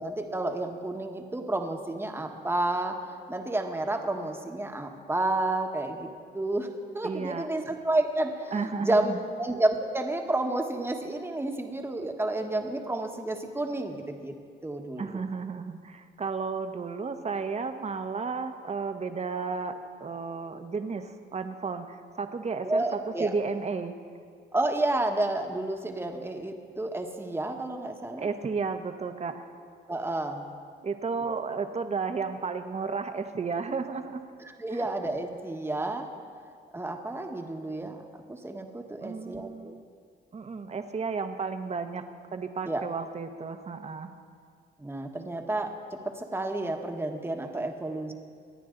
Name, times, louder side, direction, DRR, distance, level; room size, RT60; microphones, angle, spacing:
voice 1, 0.0-3.0 3.3-6.7 6.9-14.3 14.6-15.2 22.6-23.3 24.5-28.3 29.9-30.4 34.4-36.1 36.7-39.8 42.7-42.8 44.8-45.7 46.0-48.1, right 2 dB, 10° right, 4 dB, 1.3 m, -30 dB
voice 2, 7.0-7.5 8.5-9.2 15.0-23.9 28.2-29.5 30.8-34.2 34.7-34.9 39.0-39.8 40.3-42.0 42.3-44.1, right 5 dB, 35° right, 7 dB, 1.0 m, -33 dB
24.5 x 9.4 x 3.9 m, 2.1 s
cardioid pair, 90°, 20 cm